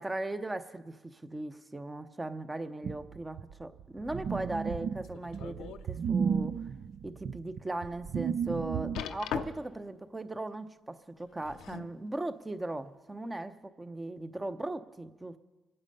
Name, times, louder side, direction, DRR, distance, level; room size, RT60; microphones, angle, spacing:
voice 1, 0.0-6.6 7.0-15.4, right 2 dB, 15° right, 11 dB, 0.8 m, -38 dB
sound 1, 2.8-9.0, right 7 dB, 60° right, 0.5 m, -33 dB
sound 2, 5.0-5.9 6.4-6.5 7.1-7.2 9.0-9.8 11.2-12.0 12.9-13.0, left 8 dB, 85° left, 0.6 m, -39 dB
25.0 x 8.8 x 5.5 m, 1.2 s
cardioid pair, 90°, 0 cm